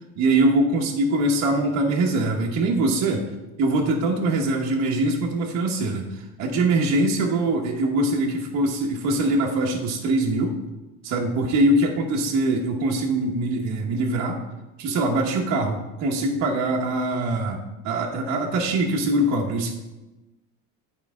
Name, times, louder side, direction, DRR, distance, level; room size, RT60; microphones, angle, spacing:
voice 1, 0.2-3.2 3.6-10.6 11.0-14.4 14.8-19.7, right 2 dB, 55° right, 0 dB, 1.1 m, -23 dB
9.4 x 4.8 x 3.6 m, 1.1 s
cardioid pair, 130°, 32 cm